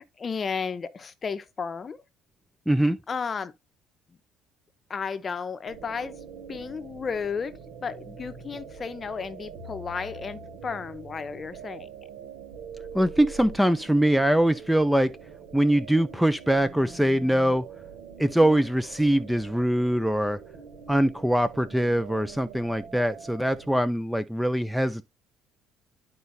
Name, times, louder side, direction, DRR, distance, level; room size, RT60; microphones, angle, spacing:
voice 1, 0.0-2.0 3.1-3.5 4.9-6.1 6.5-11.9 18.4-18.6, left 5 dB, 30° left, 0.8 m, -33 dB
voice 2, 2.7-3.0 12.9-15.2 15.5-17.6 18.2-20.4 20.9-25.1, right 1 dB, ahead, 0.5 m, -23 dB
sound 1, 5.6-23.8, right 5 dB, 80° right, 3.1 m, -44 dB
11.0 x 4.5 x 2.7 m
cardioid pair, 120°, 0 cm